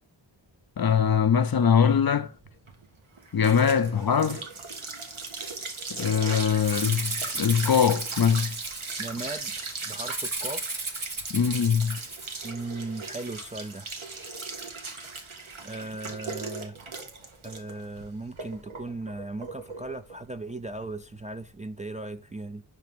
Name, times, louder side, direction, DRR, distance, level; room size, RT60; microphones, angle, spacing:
voice 1, 0.8-2.3 3.3-4.4 5.9-8.5 11.3-12.0, left 7 dB, 50° left, 0.6 m, -22 dB
sound 1, 2.4-21.5, right 4 dB, 85° right, 1.1 m, -38 dB
Rattle (instrument), 6.6-9.3 10.1-12.3, right 2 dB, 45° right, 1.2 m, -35 dB
voice 2, 9.0-9.6 9.9-10.7 10.9-11.0 12.4-13.9 15.6-16.8 17.4-22.6, right 2 dB, 15° right, 0.3 m, -37 dB
5.7 x 3.3 x 5.0 m
wide cardioid pair, 40°, 47 cm